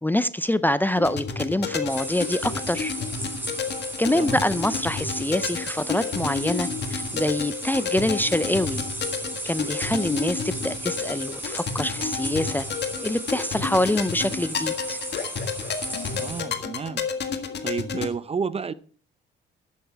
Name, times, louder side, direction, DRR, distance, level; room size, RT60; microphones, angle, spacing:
voice 1, 0.0-2.9 4.0-8.8 9.4-12.6 13.0-15.0, left 1 dB, 10° left, 0.5 m, -25 dB
sound 1, 1.0-18.1, left 5 dB, 60° left, 1.6 m, -31 dB
sound 2, 1.9-16.4, right 1 dB, 10° right, 3.9 m, -35 dB
voice 2, 16.1-17.0 17.6-18.7, right 5 dB, 30° right, 0.6 m, -30 dB
12.0 x 8.3 x 4.7 m
cardioid pair, 90°, 20 cm